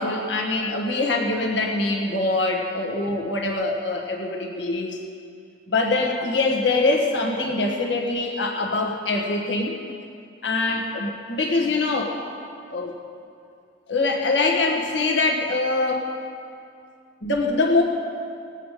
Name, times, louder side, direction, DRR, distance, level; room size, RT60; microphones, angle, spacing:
voice 1, 0.0-5.0 5.7-9.8 10.4-12.2 12.7-12.9 13.9-16.0 17.2-17.8, left 3 dB, 70° left, 1 dB, 1.5 m, -23 dB
19.5 x 8.5 x 5.0 m, 2.5 s
head